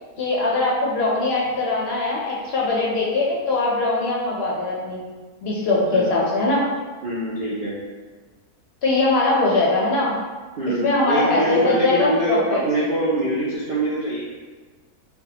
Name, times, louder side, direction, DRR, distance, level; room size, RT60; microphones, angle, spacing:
voice 1, 0.2-5.0 5.4-6.6 8.8-10.1 10.8-12.6, left 2 dB, 60° left, -4 dB, 0.7 m, -21 dB
voice 2, 7.0-7.8 10.6-14.2, right 1 dB, 70° right, -6 dB, 0.5 m, -24 dB
3.4 x 2.2 x 2.7 m, 1.4 s
omnidirectional pair, 1.5 m